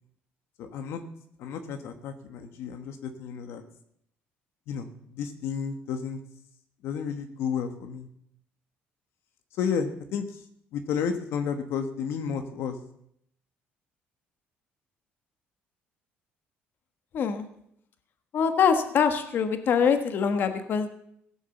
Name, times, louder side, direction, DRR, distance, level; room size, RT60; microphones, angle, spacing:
voice 1, 0.6-1.0 1.4-3.6 4.7-6.2 6.8-8.1 9.5-10.5 10.7-12.8, left 6 dB, 75° left, 7 dB, 1.3 m, -32 dB
voice 2, 17.1-17.5 18.3-20.9, left 6 dB, 55° left, 8 dB, 1.4 m, -24 dB
16.5 x 7.1 x 7.2 m, 0.73 s
cardioid pair, 120°, 4 cm